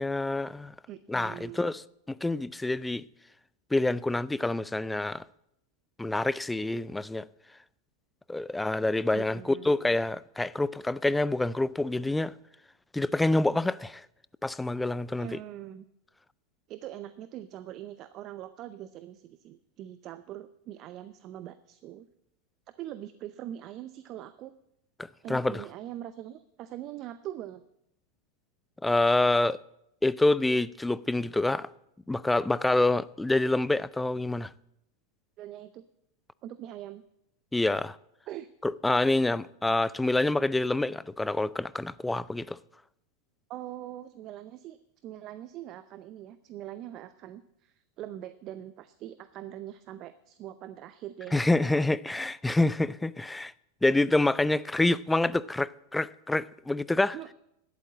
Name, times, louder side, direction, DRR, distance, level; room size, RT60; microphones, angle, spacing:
voice 1, 0.0-0.7 1.1-1.8 2.1-3.0 3.7-5.2 6.0-7.3 8.3-12.3 12.9-14.0 14.4-15.3 25.0-25.6 28.8-29.6 30.0-31.7 32.1-34.5 37.5-38.0 38.6-42.6 51.3-53.5 53.8-57.2, left 2 dB, 10° left, 0.4 m, -27 dB
voice 2, 0.9-1.7 9.1-9.7 15.2-15.8 16.7-22.1 22.8-24.5 25.2-27.6 35.4-35.8 36.4-37.0 38.3-38.5 43.5-51.4 57.1-57.3, right 12 dB, 45° right, 0.6 m, -42 dB
12.0 x 8.4 x 7.5 m
hypercardioid pair, 100°, 0 cm